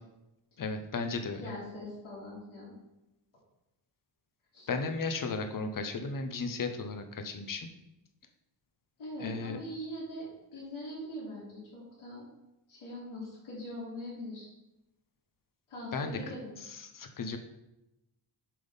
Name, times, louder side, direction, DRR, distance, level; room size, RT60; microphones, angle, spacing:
voice 1, 0.6-1.4 4.7-7.7 9.2-9.6 15.9-16.2 16.8-17.4, left 4 dB, 45° left, 6 dB, 0.8 m, -35 dB
voice 2, 1.3-2.7 4.5-4.7 9.0-12.3 12.7-14.5 15.7-16.5, left 1 dB, 90° left, -9 dB, 2.7 m, -42 dB
7.6 x 3.6 x 5.5 m, 0.94 s
wide cardioid pair, 115°, 47 cm